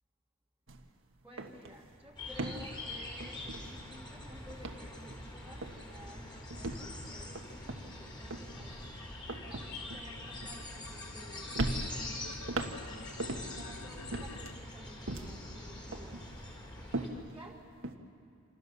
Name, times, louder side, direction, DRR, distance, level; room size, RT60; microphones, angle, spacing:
sound 1, 0.7-0.9 1.2-4.2 4.5-5.3 5.6-6.0 6.5-11.2 11.5-13.7 14.1-15.5 15.9-18.0, right 2 dB, 60° right, 1.5 m, -40 dB
voice 1, 1.2-8.9 9.4-16.3 17.0-17.8, equal, 10° right, -5 dB, 1.9 m, -54 dB
sound 2, 2.2-17.1, left 1 dB, 20° left, 4.5 m, -44 dB
sound 3, 5.3-14.5, left 5 dB, 80° left, 1.2 m, -52 dB
27.0 x 26.5 x 6.8 m, 2.4 s
head